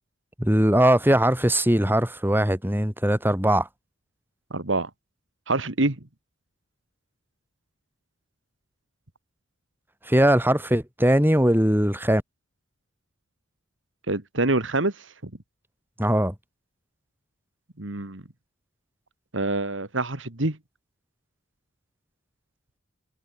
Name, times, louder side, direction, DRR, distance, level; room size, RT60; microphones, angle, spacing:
voice 1, 0.4-3.7 10.0-12.2 16.0-16.3, right 1 dB, 10° right, 6.8 m, -20 dB
voice 2, 4.5-4.9 5.5-6.0 14.1-14.9 15.2-15.3 17.8-18.2 19.3-20.6, right 2 dB, 85° right, 2.4 m, -25 dB
head